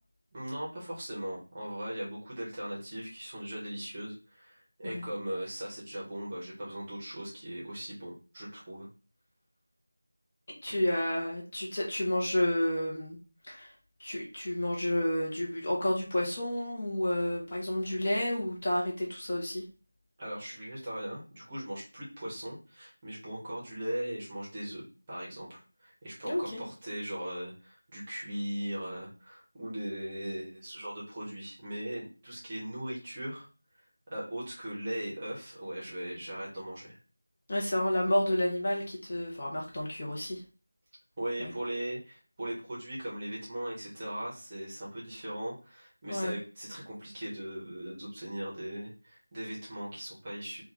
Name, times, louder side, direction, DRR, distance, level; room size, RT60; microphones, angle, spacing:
voice 1, 0.3-8.9 10.7-10.8 20.2-33.5 34.1-37.0 41.2-50.6, right 1 dB, 20° right, -6 dB, 0.8 m, -39 dB
voice 2, 10.6-13.2 13.4-13.7 14.0-19.6 26.2-26.6 37.5-40.4 41.4-41.5 46.1-46.3, left 1 dB, 30° left, -3 dB, 0.7 m, -30 dB
3.6 x 2.3 x 2.9 m, 0.35 s
figure-of-eight pair, 175°, 0 cm